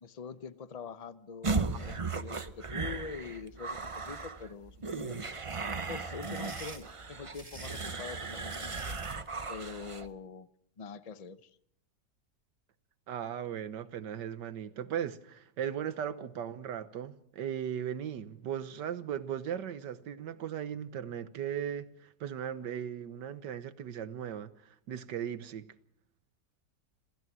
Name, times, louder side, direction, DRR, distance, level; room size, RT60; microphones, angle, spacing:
voice 1, 0.0-5.2 5.9-9.0 9.5-10.5 10.8-11.6, left 5 dB, 45° left, 0.5 m, -44 dB
sound 1, 1.4-10.1, right 4 dB, 40° right, 0.4 m, -36 dB
sound 2, 6.2-9.2, right 2 dB, 20° right, 2.1 m, -48 dB
voice 2, 13.1-25.7, right 9 dB, 80° right, 1.7 m, -37 dB
27.0 x 16.0 x 6.2 m
omnidirectional pair, 1.9 m